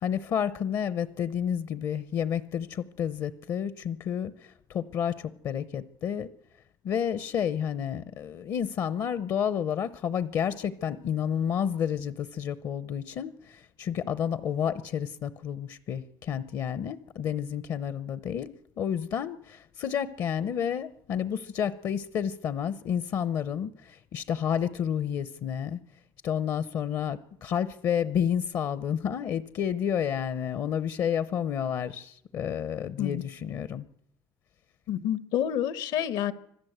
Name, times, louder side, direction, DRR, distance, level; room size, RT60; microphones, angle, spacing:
voice 1, 0.0-6.3 6.8-25.8 26.2-33.8, left 8 dB, 55° left, 0.8 m, -30 dB
voice 2, 34.9-36.3, left 10 dB, 75° left, 1.2 m, -28 dB
25.5 x 15.0 x 8.0 m
cardioid pair, 140°, 7 cm